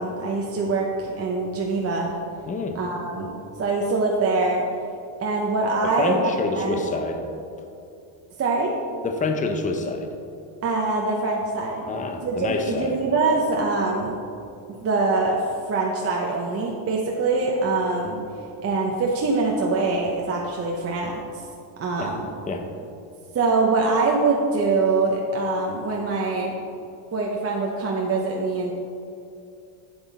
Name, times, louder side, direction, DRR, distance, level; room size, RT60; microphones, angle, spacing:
voice 1, 0.0-2.1 2.7-3.3 3.6-4.7 5.2-6.8 8.4-8.8 10.6-12.0 12.2-14.2 14.8-18.2 18.6-21.5 21.8-22.3 23.3-26.5 27.1-28.7, right 3 dB, 30° right, -1 dB, 0.8 m, -24 dB
voice 2, 2.5-2.8 5.8-7.2 9.0-10.1 11.9-13.0 22.0-22.1 22.5-22.7, left 3 dB, 20° left, 5 dB, 0.6 m, -27 dB
8.0 x 7.7 x 4.1 m, 2.6 s
cardioid pair, 140°, 44 cm